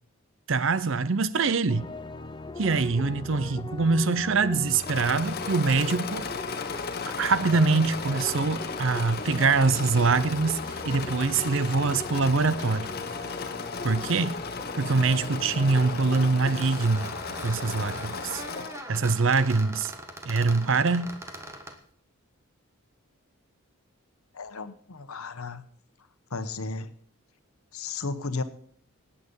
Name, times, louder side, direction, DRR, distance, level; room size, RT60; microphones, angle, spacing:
voice 1, 0.5-1.9 2.6-6.3 7.2-12.9 13.8-14.3 14.7-17.1 17.4-18.4 18.9-19.9 20.2-21.1, right 4 dB, 60° right, 0.6 m, -24 dB
sound 1, 1.7-16.7, left 2 dB, 20° left, 0.6 m, -40 dB
Engine / Mechanisms, 4.6-18.9, left 5 dB, 45° left, 1.1 m, -36 dB
sound 2, 15.7-16.2 16.6-21.8, right 1 dB, 10° right, 1.3 m, -41 dB
voice 2, 24.3-25.6 26.3-26.9 27.7-28.4, left 3 dB, 80° left, 1.1 m, -34 dB
18.5 x 8.5 x 5.5 m
head